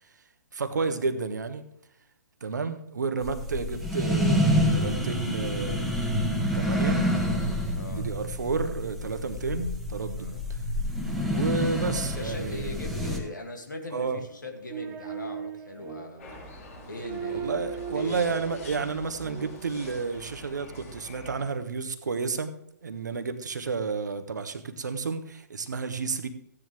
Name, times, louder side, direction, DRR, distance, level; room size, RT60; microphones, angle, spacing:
voice 1, 0.5-1.6 2.4-7.0 7.9-10.6 11.2-12.8 13.9-14.2 17.3-22.5 22.8-26.3, right 4 dB, 65° right, 9 dB, 1.2 m, -31 dB
sound 1, 3.2-13.2, equal, ahead, 1.6 m, -28 dB
voice 2, 7.7-8.1 10.1-10.4 11.9-16.3 16.8-18.3, left 2 dB, 80° left, 3 dB, 2.4 m, -40 dB
sound 2, 14.3-20.2 21.3-21.4, right 7 dB, 20° right, 1.0 m, -39 dB
sound 3, 16.2-21.4, left 2 dB, 50° left, 4.8 m, -46 dB
15.0 x 9.8 x 3.4 m, 0.72 s
figure-of-eight pair, 120°, 10 cm